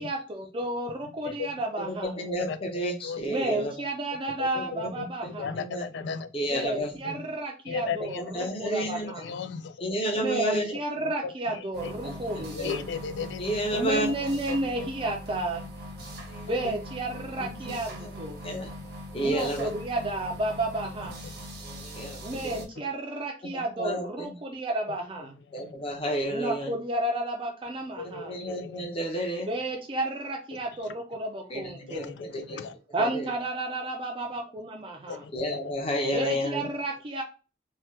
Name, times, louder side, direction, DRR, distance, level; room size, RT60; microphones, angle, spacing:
voice 1, 0.0-2.1 3.2-5.6 6.5-9.3 10.2-12.8 13.7-15.7 16.4-18.4 19.2-21.2 22.2-25.4 26.3-28.4 29.5-32.2 32.9-35.2 36.1-37.2, right 1 dB, 30° right, 0.4 m, -32 dB
voice 2, 1.9-3.7 4.5-4.9 5.5-5.8 6.3-6.9 8.2-9.1 9.8-10.7 12.0-12.7 13.4-14.1 16.3-16.5 17.6-17.8 18.0-18.1 18.4-18.7 19.1-19.7 21.6-22.6 23.8-24.3 25.5-26.7 28.2-29.5 31.5-32.6 33.0-33.3 35.3-36.6, right 1 dB, 30° left, 0.8 m, -31 dB
voice 3, 2.5-3.2 4.4-4.5 5.0-5.1 5.4-6.3 7.0-7.2 7.7-8.2 8.6-9.7 10.9-11.6 12.5-13.8 14.5-14.6 14.8-14.9 18.4-18.6 21.2-21.3 22.8-22.9 25.6-25.7 28.0-28.9 31.9-32.8 35.1-35.6, left 6 dB, 80° left, 0.4 m, -36 dB
sound 1, 11.7-22.7, equal, 60° right, 0.7 m, -41 dB
2.8 x 2.2 x 3.2 m
head